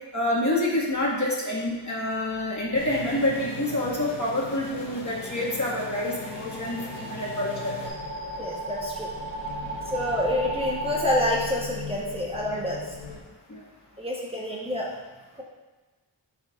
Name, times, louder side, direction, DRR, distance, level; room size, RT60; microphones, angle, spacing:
voice 1, 0.1-7.7 12.5-12.6 13.5-13.6, left 1 dB, 40° left, -5 dB, 1.7 m, -27 dB
sound 1, 2.7-7.9, left 1 dB, 70° left, 1.1 m, -39 dB
sound 2, 5.1-11.2, right 3 dB, 40° right, 2.1 m, -36 dB
sound 3, 7.8-13.2, left 3 dB, 90° left, 1.1 m, -39 dB
voice 2, 8.4-9.1 9.9-12.9 14.0-14.9, left 1 dB, 15° right, -5 dB, 1.0 m, -28 dB
8.6 x 5.7 x 2.4 m, 1.2 s
wide cardioid pair, 50°, 45 cm